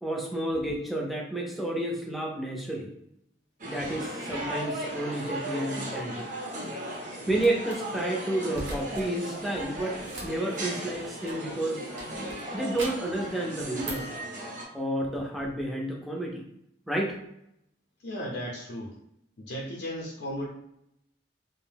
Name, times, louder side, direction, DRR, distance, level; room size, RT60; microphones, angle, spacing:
voice 1, 0.0-2.9 3.6-6.3 7.3-11.9 12.5-14.1 14.7-16.4 16.9-17.2, right 1 dB, ahead, -1 dB, 0.4 m, -31 dB
sound 1, 3.6-14.6, right 1 dB, 45° right, 0.6 m, -36 dB
sound 2, 7.4-7.7 8.5-9.1 9.4-11.5 12.0-13.2 13.6-14.2, right 1 dB, 80° right, 0.8 m, -41 dB
voice 2, 18.0-19.0 19.4-20.5, equal, 65° left, -3 dB, 0.5 m, -35 dB
2.6 x 2.0 x 3.3 m, 0.79 s
head